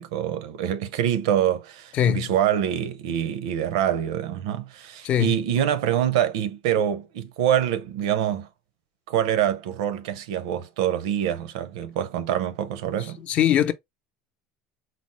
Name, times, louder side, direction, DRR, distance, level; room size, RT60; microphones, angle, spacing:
voice 1, 0.0-8.5 9.1-13.2, right 10 dB, 85° right, 0.6 m, -25 dB
voice 2, 1.9-2.3 5.0-5.4 13.3-13.7, left 10 dB, 45° left, 0.6 m, -21 dB
4.1 x 2.0 x 2.9 m
supercardioid pair, 120°, 3 cm